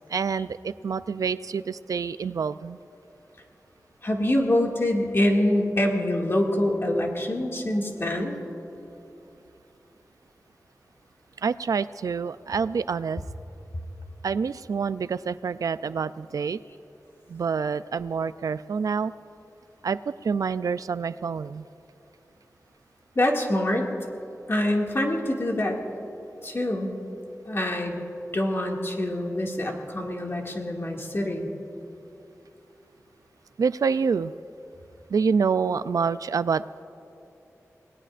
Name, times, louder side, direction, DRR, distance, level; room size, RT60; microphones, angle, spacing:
voice 1, 0.1-2.8 11.4-13.2 14.2-16.6 17.3-19.1 19.8-21.6 33.6-34.3 35.1-36.6, right 5 dB, 80° right, 15 dB, 0.3 m, -27 dB
voice 2, 4.0-8.4 23.2-23.9 24.5-26.0 26.4-26.9 27.5-28.0 28.3-31.5, left 1 dB, 45° left, 0 dB, 2.2 m, -25 dB
27.5 x 19.0 x 2.5 m, 2.9 s
wide cardioid pair, 70°, 6 cm